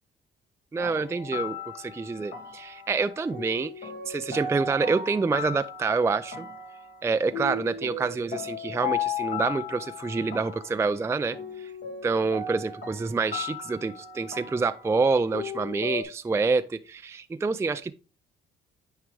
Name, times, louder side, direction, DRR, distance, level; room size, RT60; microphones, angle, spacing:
voice 1, 0.7-6.4 7.0-11.7 12.0-17.9, right 4 dB, 15° right, 0.4 m, -27 dB
sound 1, 0.8-16.0, left 5 dB, 60° left, 1.6 m, -36 dB
9.5 x 4.8 x 3.2 m
cardioid pair, 90°, 20 cm